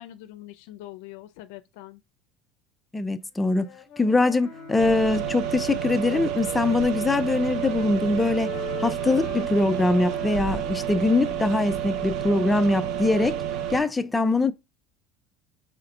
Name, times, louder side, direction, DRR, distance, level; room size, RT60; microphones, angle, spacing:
voice 1, 0.0-2.0, left 14 dB, 80° left, 0.4 m, -43 dB
voice 2, 2.9-3.7 4.0-8.5 8.8-13.4 13.7-14.5, left 2 dB, 10° left, 0.4 m, -23 dB
Wind instrument woodwind instrument, 3.4-7.1 7.4-11.8, left 10 dB, 55° left, 0.8 m, -44 dB
Bowed string instrument, 4.4-9.7, right 6 dB, 80° right, 1.2 m, -47 dB
sound 1, 4.8-13.8, right 10 dB, 55° right, 0.5 m, -30 dB
5.1 x 3.3 x 2.3 m
cardioid pair, 145°, 0 cm